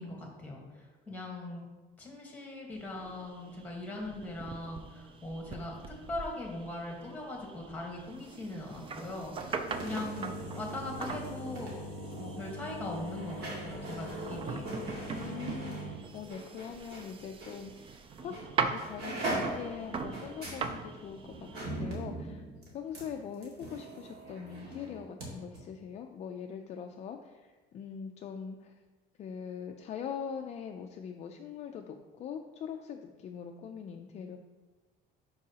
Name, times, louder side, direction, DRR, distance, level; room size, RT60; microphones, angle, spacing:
voice 1, 0.0-1.7 2.0-11.7 12.2-14.8, left 2 dB, 10° left, 0 dB, 1.4 m, -40 dB
sound 1, 2.7-21.6, right 5 dB, 30° right, 0.4 m, -41 dB
sound 2, 9.3-17.1 17.4-17.5 18.3-18.5 18.8-25.3 25.5-25.6, right 1 dB, 60° right, 2.2 m, -40 dB
voice 2, 15.1-18.3 18.6-22.4 22.7-28.7 29.2-34.4, left 7 dB, 40° left, 4 dB, 0.4 m, -42 dB
11.0 x 4.7 x 2.9 m, 1.3 s
cardioid pair, 165°, 18 cm